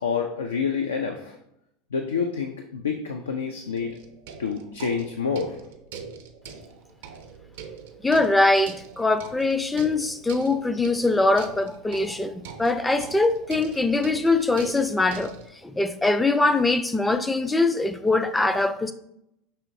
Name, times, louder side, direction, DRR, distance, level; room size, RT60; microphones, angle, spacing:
voice 1, 0.0-1.4 1.9-3.9 4.4-5.6, left 6 dB, 85° left, 0.3 m, -28 dB
sound 1, 3.8-15.5, right 6 dB, 70° right, 0.5 m, -43 dB
voice 2, 8.0-15.4 15.6-18.9, left 2 dB, 10° left, 0.4 m, -22 dB
5.5 x 3.1 x 2.6 m
hypercardioid pair, 85°, 0 cm